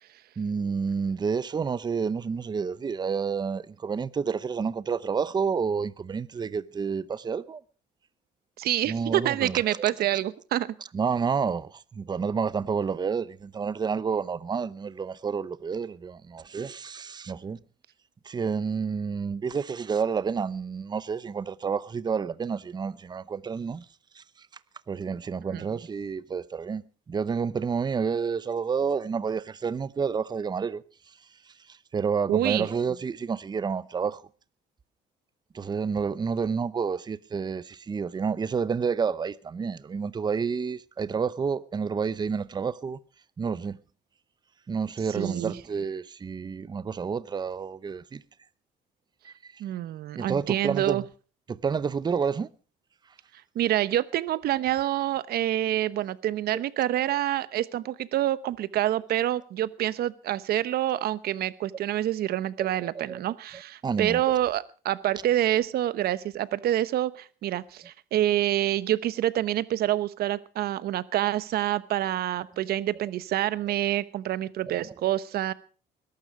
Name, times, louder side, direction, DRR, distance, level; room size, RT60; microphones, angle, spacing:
voice 1, 0.4-7.6 8.9-9.9 10.9-17.6 18.2-23.8 24.1-24.5 24.9-26.8 27.1-30.8 31.7-34.2 35.5-43.0 43.4-43.8 44.7-48.2 49.2-49.6 50.2-51.0 51.5-52.5 62.8-63.2 63.8-64.2 74.9-75.0, right 6 dB, 25° right, 0.7 m, -29 dB
voice 2, 8.6-10.7 25.5-25.7 32.3-32.7 45.1-45.6 49.6-51.0 53.5-75.5, right 13 dB, 65° right, 1.0 m, -27 dB
21.0 x 12.0 x 4.9 m
cardioid pair, 110°, 17 cm